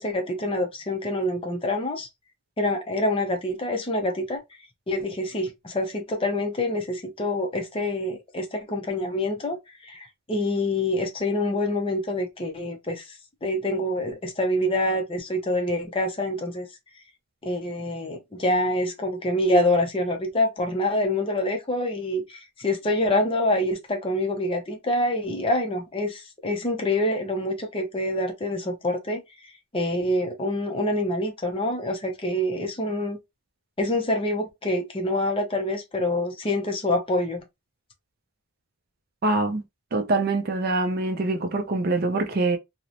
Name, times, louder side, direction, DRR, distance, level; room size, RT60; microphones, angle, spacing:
voice 1, 0.0-2.1 2.6-4.4 4.9-16.7 17.4-33.2 33.8-37.4, left 1 dB, 25° left, 0.5 m, -26 dB
voice 2, 39.2-39.6 39.9-42.6, right 2 dB, 45° right, 0.4 m, -24 dB
2.9 x 2.0 x 2.5 m
head